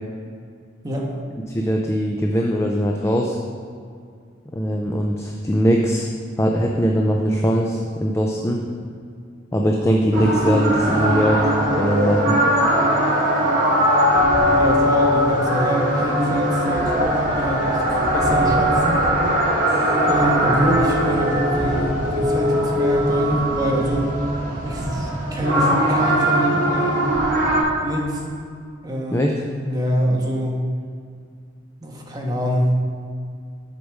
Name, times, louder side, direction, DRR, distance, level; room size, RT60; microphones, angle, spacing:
voice 1, 1.5-3.4 4.5-6.1 6.4-8.6 9.5-11.5 11.8-12.4 19.7-19.8 29.1-29.4, equal, 15° left, 0 dB, 0.5 m, -21 dB
sound 1, 10.1-27.6, equal, 50° right, 2.1 m, -20 dB
voice 2, 14.5-19.0 20.0-24.1 24.6-27.1 27.8-28.2 28.8-30.6 31.8-32.8, equal, 20° right, -2 dB, 1.3 m, -24 dB
8.0 x 5.1 x 6.4 m, 2.2 s
head